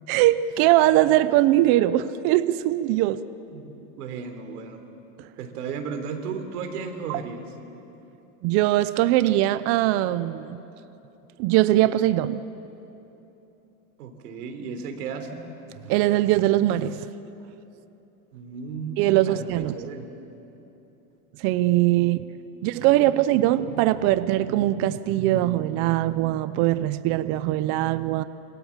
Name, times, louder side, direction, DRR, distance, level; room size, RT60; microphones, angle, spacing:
voice 1, 0.1-3.2 7.1-7.2 8.4-10.6 11.4-12.4 15.9-17.1 19.0-19.7 21.4-22.2 22.6-28.2, right 14 dB, 35° right, 14 dB, 0.5 m, -21 dB
voice 2, 3.5-4.8 5.4-7.4 14.0-15.4 18.3-19.5 19.7-20.1 22.0-22.1 22.5-23.2, right 5 dB, 85° right, 6 dB, 3.6 m, -35 dB
27.0 x 24.5 x 7.3 m, 3.0 s
supercardioid pair, 150°, 44 cm